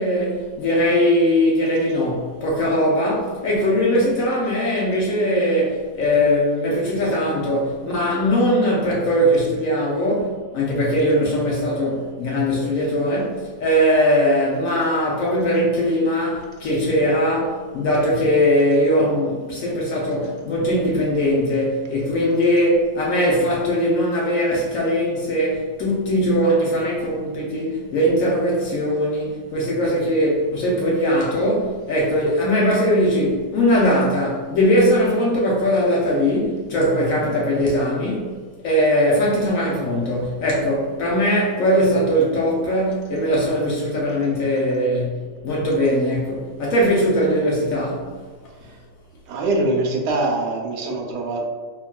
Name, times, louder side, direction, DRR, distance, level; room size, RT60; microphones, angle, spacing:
voice 1, 0.0-38.3 38.6-48.1, equal, 70° left, 0.8 m, -20 dB
voice 2, 49.3-51.5, right 2 dB, 85° right, 1.2 m, -23 dB
3.5 x 2.2 x 2.2 m
omnidirectional pair, 1.8 m